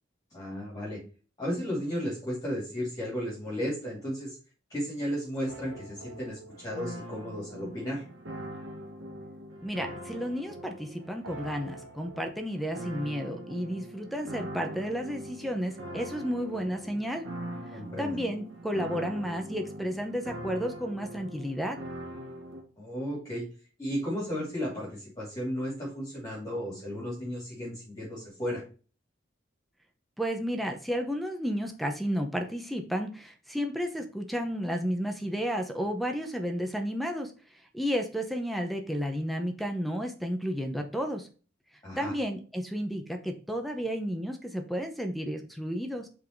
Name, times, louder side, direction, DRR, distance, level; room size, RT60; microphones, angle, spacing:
voice 1, 0.3-1.0 1.4-4.4 4.7-8.0 17.7-18.1 22.8-23.5 23.8-28.6 41.8-42.1, equal, 20° left, -6 dB, 2.6 m, -34 dB
sound 1, 5.5-22.6, right 1 dB, 90° right, 1.4 m, -42 dB
voice 2, 9.6-17.3 18.0-21.8 30.2-37.3 37.7-41.3 42.0-46.1, equal, ahead, 5 dB, 0.7 m, -32 dB
5.5 x 4.0 x 4.4 m, 0.37 s
head